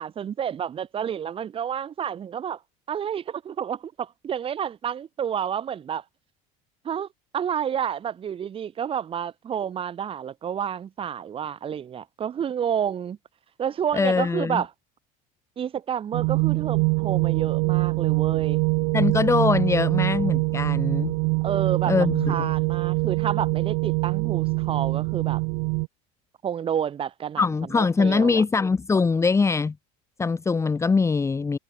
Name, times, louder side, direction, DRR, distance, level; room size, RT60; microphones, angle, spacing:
voice 1, 0.0-2.6 2.9-6.0 6.8-7.1 7.3-13.2 13.6-14.7 15.6-18.6 21.4-25.4 26.4-27.4 27.7-28.4, right 8 dB, 30° right, 6.0 m, -29 dB
voice 2, 13.9-14.6 18.9-21.2 21.9-22.5 27.4-29.7 30.2-31.6, left 4 dB, 15° left, 2.8 m, -22 dB
sound 1, 16.1-25.9, right 40 dB or more, 65° right, 0.5 m, -24 dB
supercardioid pair, 125°, 18 cm